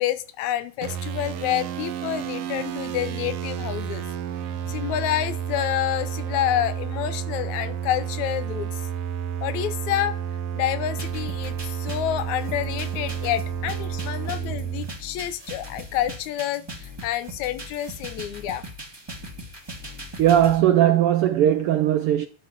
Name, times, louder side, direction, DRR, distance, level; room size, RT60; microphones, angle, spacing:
voice 1, 0.0-4.1 4.7-8.8 9.4-10.2 10.5-18.6, left 12 dB, 80° left, 2.2 m, -28 dB
sound 1, 0.8-14.9, right 8 dB, 65° right, 1.7 m, -31 dB
sound 2, 11.0-20.6, equal, 10° right, 1.2 m, -39 dB
voice 2, 20.2-22.3, right 11 dB, 85° right, 1.2 m, -19 dB
12.0 x 4.3 x 7.4 m
omnidirectional pair, 3.4 m